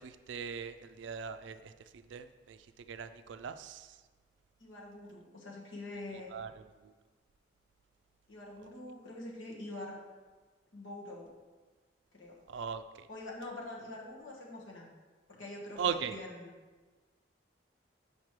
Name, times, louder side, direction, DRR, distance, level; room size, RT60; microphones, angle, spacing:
voice 1, 0.0-1.7 2.1-2.6 2.9-3.9 6.3-6.5 12.5-13.1 15.8-16.2, right 7 dB, 70° right, 10 dB, 0.3 m, -39 dB
voice 2, 4.6-6.3 8.3-10.0 10.7-11.3 12.1-12.4 13.1-14.9 15.3-16.5, left 2 dB, 85° left, -3 dB, 1.4 m, -45 dB
7.3 x 5.2 x 3.2 m, 1.3 s
head